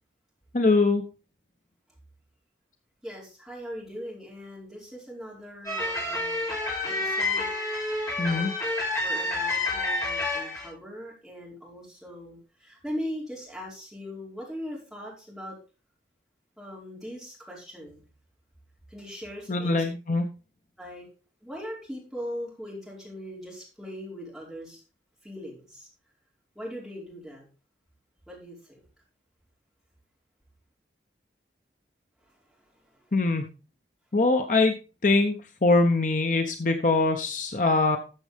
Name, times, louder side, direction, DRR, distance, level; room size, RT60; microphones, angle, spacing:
voice 1, 0.5-1.0 8.2-8.5 19.5-20.3 33.1-33.4 34.1-34.7 35.0-35.4 35.6-38.0, left 3 dB, 45° left, 6 dB, 0.9 m, -22 dB
voice 2, 3.0-6.4 6.9-7.5 8.3-8.4 9.0-15.5 16.6-18.0 18.9-19.8 20.8-21.0 21.4-24.8 25.2-25.9 26.5-27.5 28.3-28.8, equal, ahead, -5 dB, 4.9 m, -40 dB
sound 1, 5.6-10.7, left 2 dB, 20° left, 3.8 m, -29 dB
14.0 x 6.8 x 3.5 m, 0.33 s
head